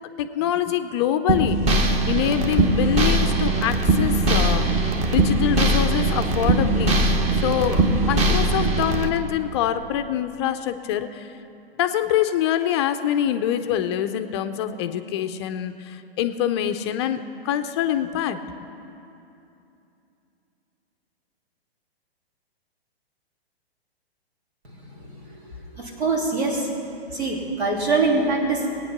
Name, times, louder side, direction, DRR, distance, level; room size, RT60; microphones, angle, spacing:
voice 1, 0.2-1.6 2.1-4.6 5.1-6.9 7.4-11.3 11.8-18.4, left 10 dB, 25° left, 9 dB, 0.4 m, -25 dB
sound 1, 1.3-9.1, right 2 dB, 20° right, 0.9 m, -20 dB
voice 2, 24.6-25.1 25.5-26.7 27.1-28.7, right 3 dB, 85° right, -2 dB, 3.1 m, -24 dB
19.0 x 9.1 x 5.9 m, 2.8 s
hypercardioid pair, 125°, 31 cm